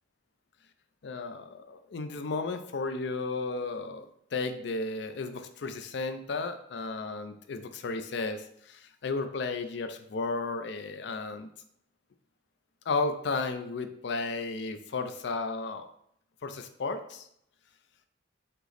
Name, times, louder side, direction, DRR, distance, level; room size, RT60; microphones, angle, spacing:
voice 1, 1.0-4.1 4.3-11.5 12.9-15.9 16.4-17.3, left 3 dB, 65° left, 8 dB, 0.4 m, -33 dB
5.3 x 2.1 x 4.0 m, 0.71 s
head